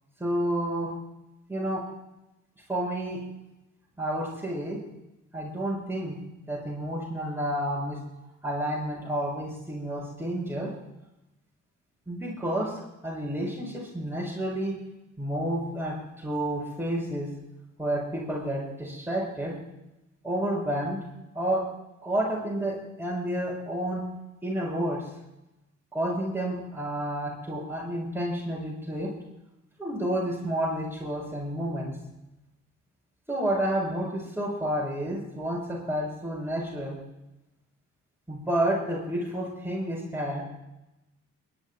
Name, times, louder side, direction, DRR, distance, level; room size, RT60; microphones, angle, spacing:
voice 1, 0.2-0.9 1.5-1.8 2.7-3.2 4.0-4.8 5.3-6.2 6.5-8.0 8.4-10.7 12.1-14.7 15.2-17.3 17.8-19.6 20.2-21.0 21.3-21.6 22.0-24.1 24.4-25.1 25.9-29.1 29.8-31.9 33.3-37.0 38.3-40.4, right 1 dB, 5° right, -5 dB, 6.3 m, -30 dB
28.0 x 11.5 x 2.2 m, 0.93 s
cardioid pair, 70°, 31 cm